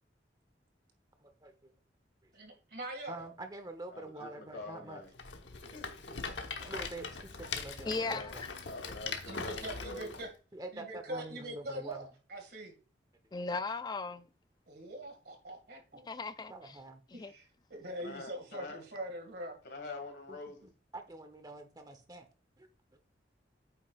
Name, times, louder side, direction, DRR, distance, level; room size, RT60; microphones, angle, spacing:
voice 1, 1.2-1.7 2.2-2.3 3.1-5.0 6.6-8.2 10.5-12.1 16.5-17.0 20.3-20.4 20.9-22.3 22.6-22.7, right 2 dB, 20° right, 1.0 m, -46 dB
voice 2, 2.3-3.2 9.3-10.3 10.7-12.7 14.7-16.1 17.1-19.6, right 1 dB, 60° right, 2.2 m, -43 dB
voice 3, 3.9-5.1 5.7-6.2 7.8-8.3 8.7-10.2 18.0-18.8 19.6-20.7, left 2 dB, 60° left, 2.1 m, -46 dB
Rattle, 5.1-10.2, left 5 dB, 80° left, 1.1 m, -41 dB
voice 4, 7.9-8.3 13.3-14.3 16.1-16.8 17.1-17.3, left 3 dB, 20° left, 0.3 m, -37 dB
8.7 x 5.8 x 2.5 m
head